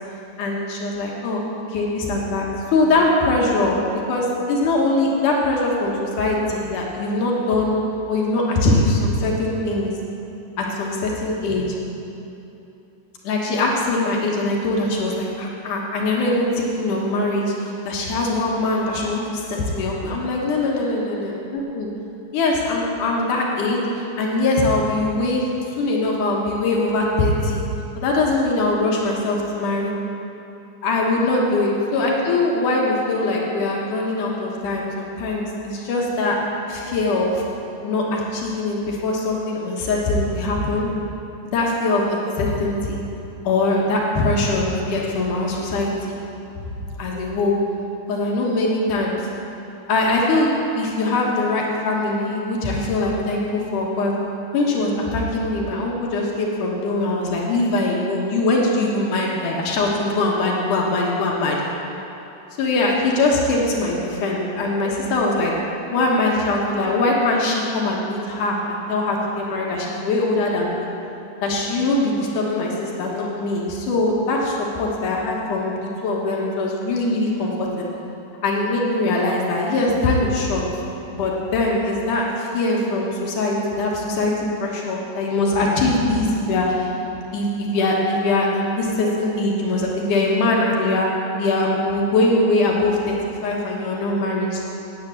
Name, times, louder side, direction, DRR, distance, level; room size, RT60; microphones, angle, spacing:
voice 1, 0.4-1.4 1.7-7.8 8.1-9.9 10.6-11.7 13.2-21.9 22.3-25.4 25.8-27.6 28.0-29.9 30.8-36.4 36.7-37.4 37.8-40.9 41.4-43.0 43.4-46.2 47.0-47.5 48.1-49.3 49.9-50.5 50.8-54.2 54.5-61.6 62.6-65.5 65.9-70.9 71.4-77.9 78.4-80.6 81.1-84.3 84.6-86.9 87.3-91.1 91.4-94.7, left 2 dB, 80° left, -2 dB, 2.8 m, -22 dB
9.3 x 8.5 x 8.4 m, 2.9 s
omnidirectional pair, 3.6 m